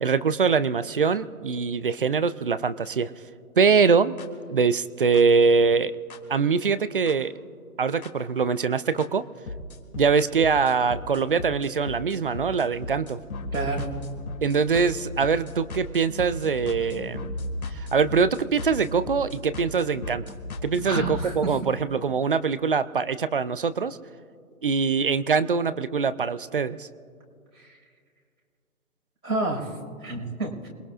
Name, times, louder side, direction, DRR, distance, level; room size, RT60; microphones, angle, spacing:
voice 1, 0.0-3.1 3.6-4.2 4.5-5.9 6.3-7.3 7.8-9.2 10.0-13.2 14.4-17.4 17.7-20.2 20.6-24.0 24.6-26.9, right 5 dB, 40° right, 16 dB, 0.4 m, -23 dB
sound 1, 4.2-4.3 5.1-5.2 6.1-6.2 7.1-7.2 8.0-8.1 9.0-9.1 9.5-21.3, left 1 dB, 70° left, 2.5 m, -36 dB
voice 2, 13.5-13.9 20.9-21.5 27.6-27.7 29.2-29.7 30.0-30.7, right 2 dB, 90° right, -2 dB, 5.4 m, -29 dB
27.5 x 21.0 x 2.5 m, 2.2 s
figure-of-eight pair, 140°, 44 cm